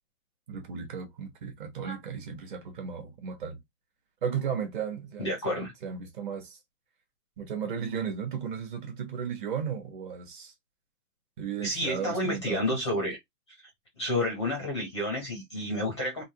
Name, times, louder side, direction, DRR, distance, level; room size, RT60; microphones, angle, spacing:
voice 1, 0.5-3.6 4.2-6.6 7.4-10.5 11.4-12.6, right 7 dB, 30° right, 0.9 m, -35 dB
voice 2, 5.2-5.7 11.6-13.2 14.0-16.2, left 1 dB, 20° left, 0.5 m, -30 dB
3.3 x 2.2 x 2.7 m
hypercardioid pair, 150°, 48 cm